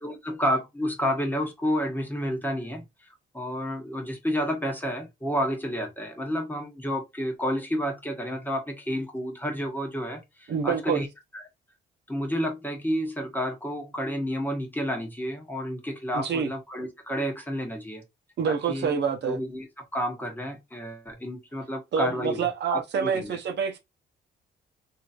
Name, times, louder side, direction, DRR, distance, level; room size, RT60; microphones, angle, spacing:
voice 1, 0.0-3.1 3.3-11.1 11.3-11.4 12.1-18.0 18.5-19.7 19.9-22.4 22.7-23.4, equal, 10° left, 1.1 m, -30 dB
voice 2, 10.5-11.0 16.1-16.5 18.4-19.4 21.9-23.8, right 6 dB, 60° right, 0.8 m, -27 dB
3.0 x 2.7 x 2.4 m
cardioid pair, 90°, 20 cm